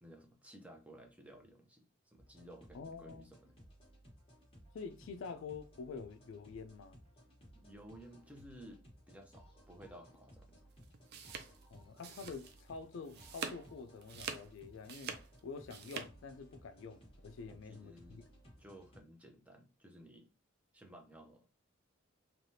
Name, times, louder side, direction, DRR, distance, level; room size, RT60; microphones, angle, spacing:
voice 1, 0.0-3.5 7.5-10.6 17.5-18.3 18.6-20.3 20.7-21.6, right 1 dB, 5° right, 0.6 m, -56 dB
sound 1, 2.2-19.0, equal, 25° left, 1.1 m, -60 dB
voice 2, 2.7-3.3 4.7-7.0 11.7-15.2 15.4-18.2, left 5 dB, 65° left, 0.3 m, -47 dB
sound 2, 10.8-12.7 13.0-13.7 14.0-16.1, right 6 dB, 50° right, 0.4 m, -45 dB
3.3 x 2.3 x 2.7 m
head